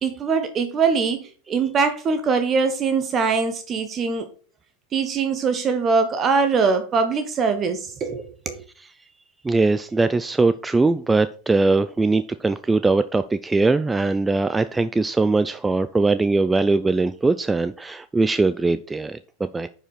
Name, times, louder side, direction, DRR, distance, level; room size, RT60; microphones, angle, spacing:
voice 1, 0.0-4.3 4.9-8.6, right 5 dB, 30° right, 1.0 m, -22 dB
voice 2, 9.4-19.7, right 3 dB, 10° right, 0.4 m, -21 dB
9.9 x 5.1 x 4.2 m
hypercardioid pair, 90°, 0 cm